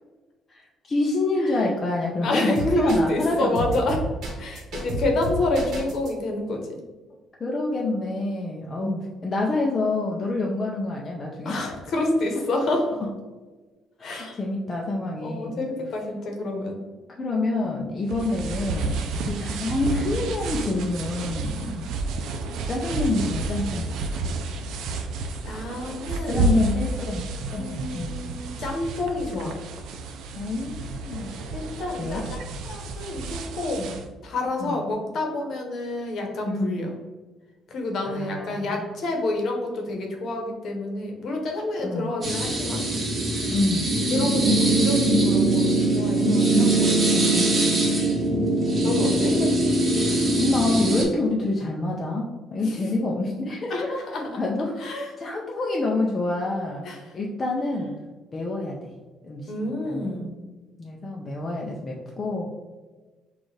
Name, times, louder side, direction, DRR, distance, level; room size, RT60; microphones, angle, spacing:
voice 1, 0.5-3.8 7.4-11.6 12.7-12.8 14.0-15.6 17.2-21.6 22.7-24.1 26.3-27.2 27.5-28.1 30.4-31.3 32.0-32.2 34.6-34.8 36.4-36.9 38.1-38.9 41.8-42.1 43.4-43.9 47.1-47.6 48.8-49.5 50.4-53.9 54.4-54.9 55.2-56.8 57.1-57.9 58.3-58.9 59.2-60.1 60.8-62.5, left 2 dB, 25° left, -2 dB, 0.5 m, -27 dB
voice 2, 2.2-4.0 4.4-6.8 8.8-8.9 11.4-12.8 14.0-14.4 15.2-16.8 21.6-21.8 25.4-26.5 27.6-29.6 31.5-33.9 34.2-36.9 37.7-42.8 44.1-47.0 48.8-49.3 52.6-53.1 53.7-54.3 54.8-55.1 56.8-57.0 59.5-60.3, left 2 dB, 50° left, 2 dB, 0.9 m, -28 dB
sound 1, 2.6-3.3 3.6-6.1, right 1 dB, 60° right, 1.3 m, -31 dB
sound 2, 18.1-34.1, right 3 dB, 80° right, 0.5 m, -30 dB
sound 3, 42.2-51.0, right 2 dB, 20° right, 1.2 m, -21 dB
6.2 x 2.4 x 3.2 m, 1.3 s
cardioid pair, 155°, 0 cm